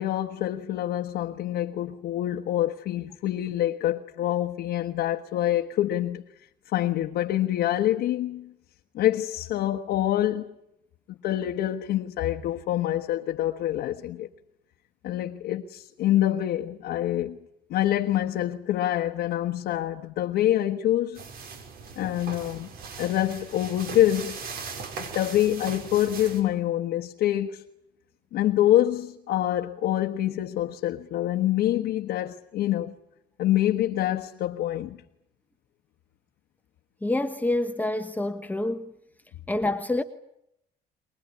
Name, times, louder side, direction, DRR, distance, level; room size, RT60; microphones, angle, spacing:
voice 1, 0.0-6.2 6.7-8.5 8.9-10.5 11.2-14.3 15.0-17.4 17.7-21.2 22.0-22.7 23.0-24.4 25.0-27.6 28.3-32.9 33.4-35.0, left 13 dB, 75° left, 1.3 m, -26 dB
sound 1, 21.2-26.4, right 5 dB, 65° right, 5.7 m, -39 dB
voice 2, 37.0-38.9 39.5-40.0, left 2 dB, 10° left, 1.2 m, -27 dB
24.0 x 20.5 x 9.7 m
cardioid pair, 110°, 17 cm